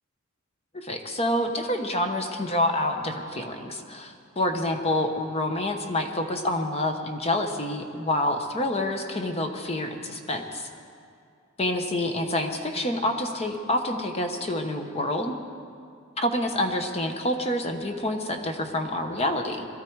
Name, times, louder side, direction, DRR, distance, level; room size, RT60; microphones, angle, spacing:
voice 1, 0.7-10.7 11.6-15.3 16.2-19.7, left 1 dB, 30° left, 5 dB, 1.0 m, -27 dB
21.5 x 13.0 x 4.7 m, 2.4 s
head